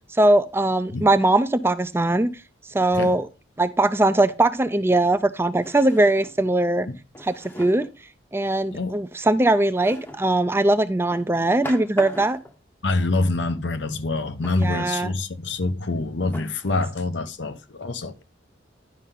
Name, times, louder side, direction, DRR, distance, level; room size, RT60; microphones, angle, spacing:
voice 1, 0.1-2.3 2.7-3.3 3.6-6.9 7.2-7.9 8.3-12.4 14.6-15.1, right 2 dB, 15° right, 0.4 m, -20 dB
Drawer open or close, 4.2-4.3 5.6-6.4 7.1-7.9 9.8-10.3 11.1-12.6 14.4-14.9 15.6-15.7 16.3-16.9, left 1 dB, 10° left, 0.8 m, -40 dB
voice 2, 12.8-18.2, left 2 dB, 70° left, 0.8 m, -26 dB
10.5 x 5.5 x 3.7 m
head